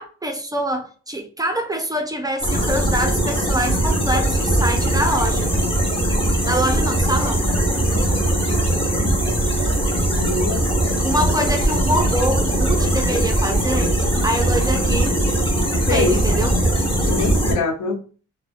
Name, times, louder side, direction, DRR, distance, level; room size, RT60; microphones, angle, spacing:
voice 1, 0.0-5.5 6.5-7.5 11.0-13.9 14.2-15.2 15.9-16.5, right 1 dB, 15° right, 0.4 m, -24 dB
sound 1, 2.4-17.5, right 1 dB, 20° left, 0.9 m, -20 dB
voice 2, 9.8-10.7 15.9-16.2 17.0-18.0, left 4 dB, 80° left, 0.6 m, -24 dB
2.6 x 2.1 x 2.4 m
cardioid pair, 90°, 30 cm